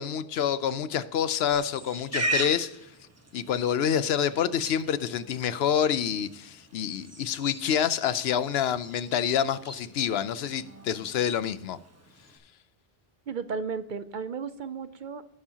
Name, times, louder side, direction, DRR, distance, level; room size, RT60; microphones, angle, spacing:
voice 1, 0.0-2.8 3.3-11.8, left 8 dB, 75° left, 15 dB, 0.8 m, -27 dB
Livestock farm animals working animals, 1.5-12.4, right 2 dB, 15° right, 1.0 m, -39 dB
voice 2, 13.3-15.2, right 5 dB, 55° right, 12 dB, 0.6 m, -34 dB
16.5 x 7.1 x 2.8 m, 0.84 s
omnidirectional pair, 1.1 m